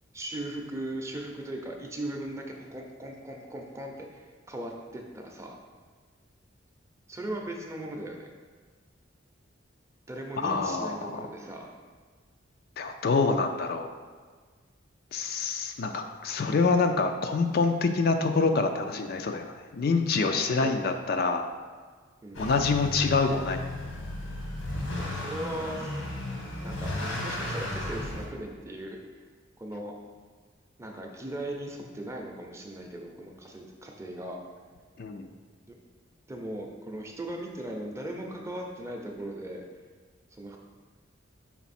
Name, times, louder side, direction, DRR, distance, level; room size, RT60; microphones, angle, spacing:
voice 1, 0.1-5.5 7.1-8.3 10.1-11.7 20.3-20.7 22.2-22.4 25.0-26.0 26.6-26.9 27.2-29.0 29.6-29.9 30.8-34.4 36.3-39.6 40.3-40.6, right 1 dB, 15° right, 1 dB, 0.6 m, -38 dB
voice 2, 10.4-11.3 12.8-13.9 15.1-21.5 22.4-23.6 35.0-35.3, left 4 dB, 50° left, 6 dB, 0.4 m, -26 dB
Motor vehicle (road) / Accelerating revving vroom, 22.3-28.3, left 1 dB, 85° left, 1.3 m, -34 dB
5.9 x 4.0 x 4.2 m, 1.5 s
head